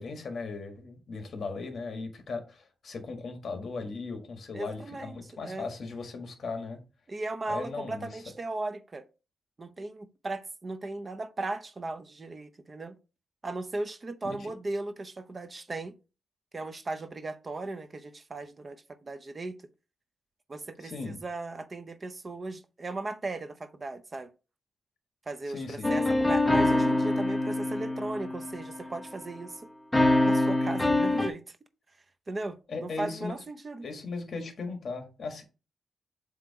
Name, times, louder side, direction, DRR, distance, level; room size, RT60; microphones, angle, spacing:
voice 1, 0.0-6.8 7.5-8.2 14.2-14.5 20.8-21.2 25.5-25.9 32.7-33.4 33.8-35.4, left 4 dB, 50° left, 1.7 m, -38 dB
voice 2, 4.5-5.2 5.4-5.7 7.1-9.1 9.6-13.0 13.4-15.9 16.5-19.6 20.5-24.3 25.3-29.6 30.2-31.6 32.3-33.9, right 2 dB, 30° right, 0.6 m, -37 dB
sound 1, 25.8-29.0 29.9-31.3, left 2 dB, 10° left, 0.7 m, -25 dB
7.6 x 2.9 x 4.7 m
wide cardioid pair, 125°, 0 cm